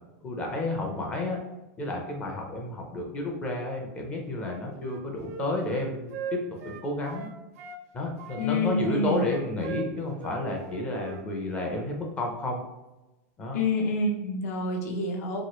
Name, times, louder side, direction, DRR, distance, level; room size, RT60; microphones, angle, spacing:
voice 1, 0.2-1.4 1.8-7.3 7.9-12.6 13.4-13.6, left 2 dB, 15° left, 0 dB, 0.4 m, -31 dB
Wind instrument woodwind instrument, 4.4-7.8 8.2-11.3 11.5-11.8, right 6 dB, 60° right, 0.4 m, -40 dB
voice 2, 8.4-9.2 13.5-15.4, left 2 dB, 65° left, 2 dB, 0.6 m, -27 dB
2.9 x 2.7 x 2.9 m, 1.0 s
supercardioid pair, 170°, 9 cm